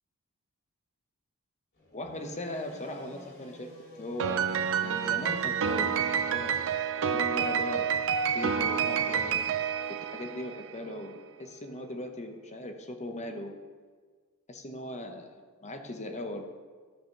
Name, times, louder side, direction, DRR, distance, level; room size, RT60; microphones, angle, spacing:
sound 1, 1.7-6.7, left 1 dB, 50° left, 3.0 m, -51 dB
voice 1, 1.9-3.7 4.0-4.5 4.8-6.6 7.1-7.9 8.3-9.6 10.1-13.5 14.5-16.4, left 1 dB, 30° left, 5 dB, 0.9 m, -39 dB
Piano, 4.2-10.7, right 7 dB, 60° right, 0.5 m, -28 dB
12.5 x 5.0 x 5.8 m, 1.5 s
head